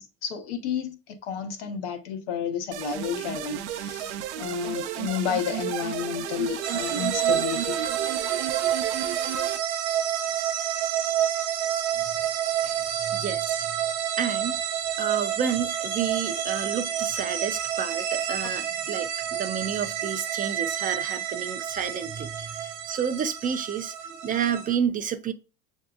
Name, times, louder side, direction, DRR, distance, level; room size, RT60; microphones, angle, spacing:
voice 1, 0.0-7.8 12.8-13.2, left 8 dB, 85° left, 0.9 m, -31 dB
sound 1, 2.7-9.6, right 12 dB, 85° right, 0.5 m, -33 dB
sound 2, 6.6-24.8, right 9 dB, 70° right, 1.0 m, -29 dB
voice 2, 12.6-13.8 14.2-14.6 15.0-25.3, right 7 dB, 25° right, 0.4 m, -30 dB
6.6 x 2.7 x 2.3 m
supercardioid pair, 100°, 34 cm